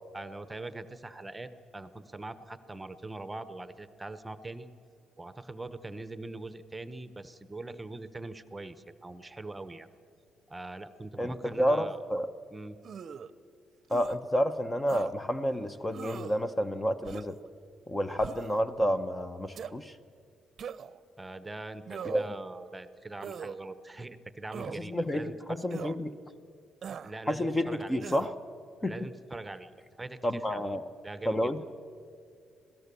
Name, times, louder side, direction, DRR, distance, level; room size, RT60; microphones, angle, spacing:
voice 1, 0.1-4.7 5.2-9.9 10.5-12.0 12.5-12.8 21.2-25.6 27.0-28.0 28.8-29.7 30.0-30.6 31.0-31.5, right 2 dB, 15° right, 12 dB, 1.0 m, -42 dB
voice 2, 11.2-12.3 13.9-17.4 17.9-20.0 22.0-22.2 24.8-25.3 25.6-26.1 27.3-28.3 28.8-29.1 30.2-30.9 31.2-31.6, equal, 15° left, 10 dB, 0.9 m, -30 dB
sound 1, 12.8-13.3 13.9-14.2 14.9-15.1 15.9-16.4 17.0-17.4 18.2-18.6 19.5-19.7 20.6-21.0 21.9-22.4 23.2-23.6 24.5-24.8 25.7-26.0 26.8-27.1 28.0-28.3, right 7 dB, 55° right, 0.7 m, -40 dB
26.5 x 17.5 x 7.0 m, 2.3 s
cardioid pair, 90°, 0 cm